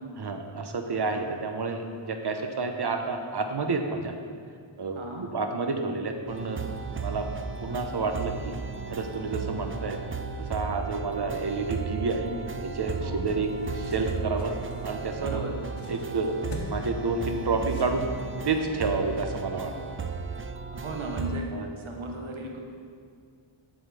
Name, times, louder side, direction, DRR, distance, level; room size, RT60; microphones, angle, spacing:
voice 1, 0.2-4.1 4.8-5.0 5.3-6.6 7.0-7.3 7.6-8.5 8.9-10.0 10.4-12.3 12.6-13.5 13.7-14.5 14.8-15.4 15.9-18.1 18.4-19.7 21.5-21.7, right 3 dB, 55° right, 5 dB, 0.8 m, -29 dB
voice 2, 4.9-5.3 13.0-13.3 15.2-15.6 20.7-21.5 21.8-22.6, right 2 dB, 70° right, 1 dB, 1.2 m, -35 dB
sound 1, 6.3-21.4, right 5 dB, 30° right, 0.4 m, -35 dB
sound 2, 13.1-18.4, left 2 dB, 65° left, 1.1 m, -46 dB
7.7 x 6.4 x 4.8 m, 2.2 s
wide cardioid pair, 70°, 50 cm